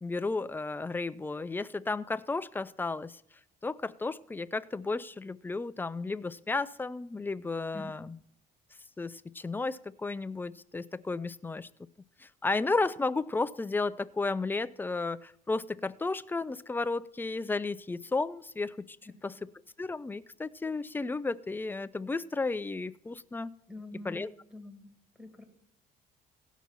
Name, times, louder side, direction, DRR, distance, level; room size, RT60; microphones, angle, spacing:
voice 1, 0.0-3.2 3.6-8.2 9.0-11.7 12.2-19.0 19.2-19.5 19.8-23.6 24.0-24.3, left 3 dB, 10° left, 13 dB, 0.4 m, -33 dB
voice 2, 23.7-24.9 25.2-25.4, left 2 dB, 5° right, 4 dB, 2.1 m, -45 dB
16.5 x 6.1 x 5.6 m, 0.74 s
cardioid pair, 110°, 17 cm